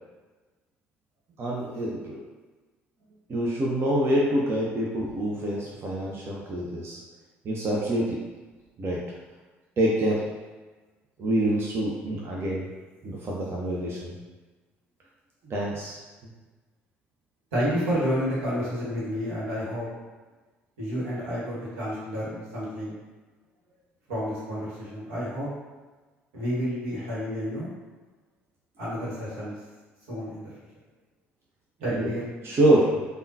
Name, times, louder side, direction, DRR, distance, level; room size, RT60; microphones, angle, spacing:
voice 1, 1.4-2.2 3.3-7.0 7.4-8.2 8.8-9.0 9.8-10.2 11.2-12.7 13.0-14.1 15.4-16.0 31.9-32.1 32.4-33.0, right 1 dB, 40° right, -4 dB, 0.6 m, -26 dB
voice 2, 17.5-19.9 20.8-23.0 24.1-25.5 26.3-27.7 28.8-29.5 30.1-30.5 31.8-32.3, equal, 75° right, -8 dB, 1.1 m, -30 dB
3.5 x 2.2 x 2.7 m, 1.3 s
hypercardioid pair, 55°, 6 cm